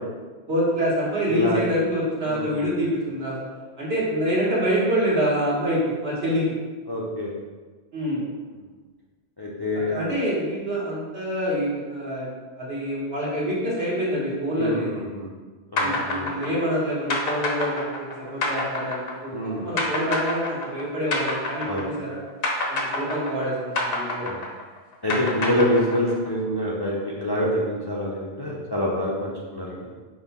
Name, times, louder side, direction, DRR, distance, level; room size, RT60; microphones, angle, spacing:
voice 1, 0.5-3.3 3.8-6.5 7.9-8.2 9.9-15.1 15.8-22.2 22.7-24.3, equal, 65° right, -6 dB, 1.6 m, -26 dB
voice 2, 1.3-1.7 2.3-2.7 6.9-7.3 9.4-9.9 14.6-15.3 15.7-16.3 19.3-19.7 21.7-21.9 24.2-24.4 25.0-29.9, left 1 dB, 30° left, -5 dB, 0.4 m, -26 dB
sound 1, 15.8-22.1 22.4-26.3, left 2 dB, 65° left, 0.9 m, -27 dB
5.5 x 2.3 x 4.0 m, 1.4 s
omnidirectional pair, 1.1 m